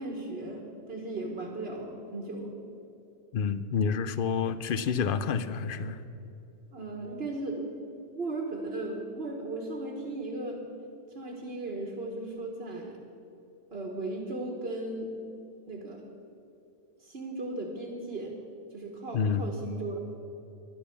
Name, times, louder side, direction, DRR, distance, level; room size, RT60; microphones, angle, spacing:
voice 1, 0.0-2.5 6.7-7.7 8.1-10.6 11.1-13.0 13.7-15.1 15.7-16.0 17.0-18.3 18.7-20.0, right 2 dB, 55° right, 0 dB, 1.6 m, -36 dB
voice 2, 3.3-6.0 19.1-19.4, left 6 dB, 55° left, 13 dB, 0.6 m, -28 dB
11.5 x 10.0 x 7.1 m, 2.8 s
omnidirectional pair, 1.3 m